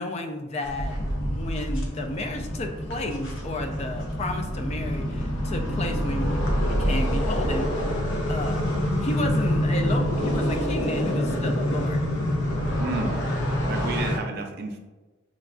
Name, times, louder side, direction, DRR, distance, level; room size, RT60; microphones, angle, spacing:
voice 1, 0.0-7.7 8.3-8.7 9.0-12.0, left 2 dB, 30° left, 5 dB, 0.3 m, -32 dB
sound 1, 0.6-14.2, equal, 65° left, 0.7 m, -26 dB
voice 2, 12.8-13.2 13.6-14.8, right 3 dB, 50° right, 4 dB, 0.4 m, -31 dB
4.9 x 2.3 x 2.4 m, 1.2 s
head